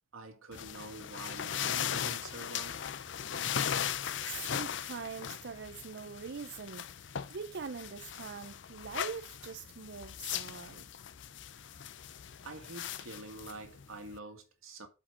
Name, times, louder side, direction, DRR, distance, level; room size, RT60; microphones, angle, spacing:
voice 1, 0.1-2.8 12.4-14.9, right 2 dB, 85° right, 2.2 m, -46 dB
sound 1, 0.5-14.2, left 9 dB, 60° left, 0.5 m, -38 dB
voice 2, 4.2-10.8, right 5 dB, 55° right, 0.5 m, -43 dB
8.6 x 5.1 x 5.3 m
head